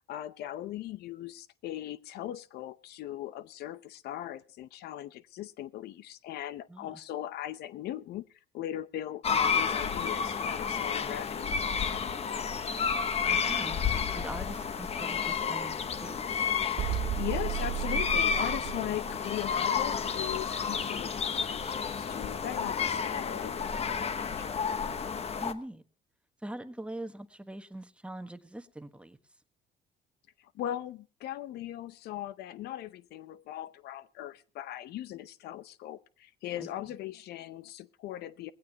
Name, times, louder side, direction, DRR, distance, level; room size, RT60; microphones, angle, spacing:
voice 1, 0.1-8.2 8.5-12.1 16.9-24.6 30.4-38.5, left 12 dB, 75° left, 15 dB, 0.7 m, -39 dB
voice 2, 6.7-7.0 13.3-16.2 25.4-25.8 26.4-29.2 36.6-36.7, right 1 dB, 5° right, 8 dB, 1.3 m, -42 dB
sound 1, 9.2-25.5, left 6 dB, 35° left, 1.1 m, -31 dB
sound 2, 16.8-19.5, right 9 dB, 70° right, 1.6 m, -34 dB
20.0 x 16.0 x 2.9 m, 0.35 s
cardioid pair, 110°, 17 cm